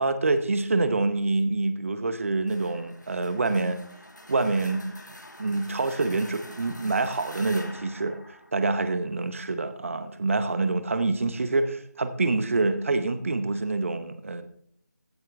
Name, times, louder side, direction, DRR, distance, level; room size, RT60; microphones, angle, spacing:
voice 1, 0.0-3.8 4.3-5.0 5.4-14.4, right 3 dB, 45° right, 11 dB, 0.8 m, -26 dB
sound 1, 2.5-9.2, left 1 dB, 80° left, 1.8 m, -46 dB
15.5 x 7.7 x 3.4 m, 0.68 s
figure-of-eight pair, 155°, 10 cm